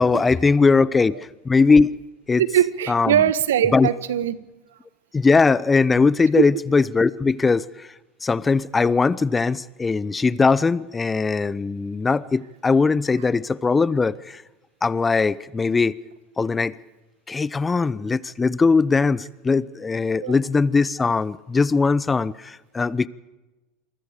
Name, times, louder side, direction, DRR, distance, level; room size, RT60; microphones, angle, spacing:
voice 1, 0.0-1.9 2.3-2.4 2.9-3.2 3.7-3.9 5.1-7.9 8.2-14.4 14.8-16.0 16.4-16.8 17.3-23.1, left 4 dB, 20° left, 0.9 m, -20 dB
voice 2, 2.4-4.4 6.4-6.5 20.2-20.3, right 10 dB, 80° right, 1.4 m, -21 dB
28.0 x 23.5 x 5.1 m
hypercardioid pair, 85°, 0 cm